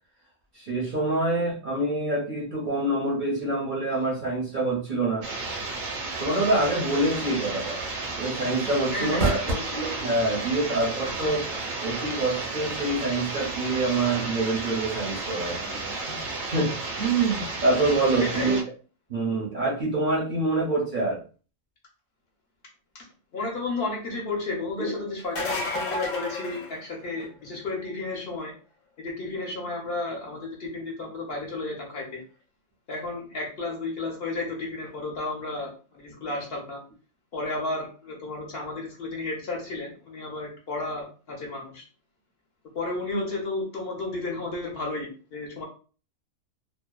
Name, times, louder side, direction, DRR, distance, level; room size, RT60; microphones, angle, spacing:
voice 1, 0.5-5.3 6.2-7.8 8.2-9.4 9.8-11.5 11.8-15.8 16.1-16.2 16.4-18.6 19.1-21.2 24.8-24.9, right 2 dB, 50° right, -3 dB, 0.6 m, -26 dB
sound 1, 5.2-18.6, right 3 dB, 80° right, 1.1 m, -32 dB
voice 2, 8.9-9.8 18.2-18.6 22.9-23.0 23.3-28.5 29.0-32.2 32.9-36.8 37.3-41.8 42.7-45.6, left 2 dB, 55° left, -1 dB, 0.8 m, -33 dB
sound 2, 25.2-27.4 32.9-33.0 34.9-35.0, left 2 dB, 85° left, 1.0 m, -31 dB
2.7 x 2.1 x 2.2 m, 0.37 s
omnidirectional pair, 1.4 m